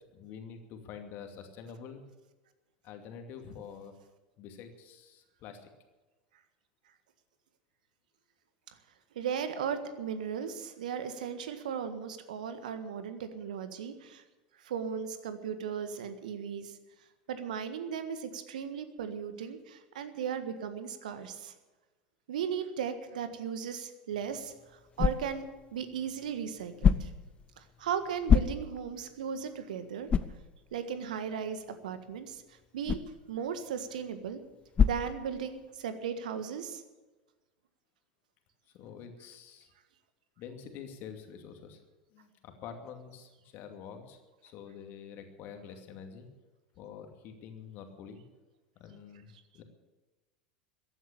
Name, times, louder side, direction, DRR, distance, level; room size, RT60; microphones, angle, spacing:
voice 1, 0.1-2.0 2.8-3.9 4.4-5.7 38.7-39.7 40.4-41.8 42.1-46.3 46.8-48.2 48.8-49.6, left 7 dB, 45° left, 6 dB, 2.5 m, -47 dB
voice 2, 9.1-14.2 14.6-16.8 17.3-21.5 22.3-27.1 27.6-30.1 30.7-33.0 33.3-34.4 34.8-36.8, right 7 dB, 70° right, 10 dB, 1.5 m, -36 dB
sound 1, 24.1-35.9, left 7 dB, 25° left, 0.7 m, -32 dB
15.0 x 11.0 x 8.7 m, 1.2 s
figure-of-eight pair, 80°, 4 cm